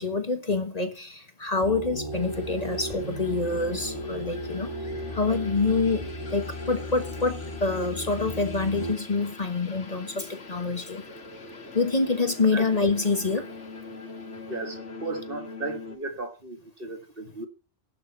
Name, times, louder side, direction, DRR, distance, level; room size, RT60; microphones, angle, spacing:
voice 1, 0.0-4.7 5.1-6.0 6.3-11.0 11.7-13.5, left 3 dB, 35° left, 1.4 m, -26 dB
sound 1, 1.6-8.9, equal, 25° right, 3.1 m, -35 dB
sound 2, 2.1-16.0, left 3 dB, 85° left, 2.0 m, -43 dB
voice 2, 14.5-17.5, right 3 dB, 50° right, 1.9 m, -35 dB
11.5 x 6.2 x 7.9 m
omnidirectional pair, 1.2 m